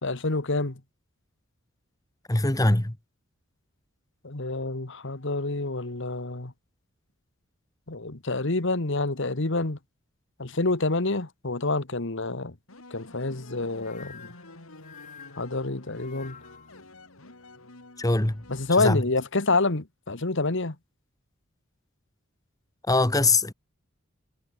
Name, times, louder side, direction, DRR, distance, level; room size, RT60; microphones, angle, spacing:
voice 1, 0.0-0.8 4.2-6.5 7.9-9.8 10.4-12.5 12.9-14.3 15.4-16.4 18.5-20.7, left 3 dB, 60° left, 1.7 m, -27 dB
voice 2, 2.3-2.9 18.0-18.4 18.8-19.0 22.9-23.5, left 2 dB, 15° left, 1.3 m, -22 dB
sound 1, 12.7-19.3, left 2 dB, 85° left, 4.3 m, -50 dB
sound 2, 13.7-16.8, left 7 dB, 40° left, 5.5 m, -49 dB
head